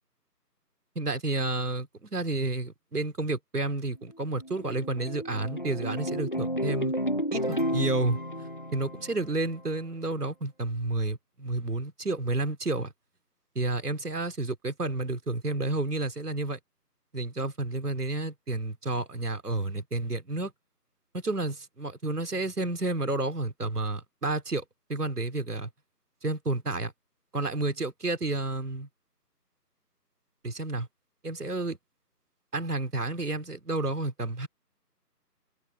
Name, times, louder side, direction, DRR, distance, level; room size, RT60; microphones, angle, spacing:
voice 1, 0.9-6.9 7.3-12.9 13.5-16.6 17.1-20.5 21.1-24.6 24.9-25.7 26.2-26.9 27.3-28.9 30.4-30.9 31.2-31.8 32.5-34.5, right 2 dB, 65° right, 2.9 m, -30 dB
sound 1, 4.1-9.7, equal, 30° left, 1.0 m, -32 dB
figure-of-eight pair, 170°, 49 cm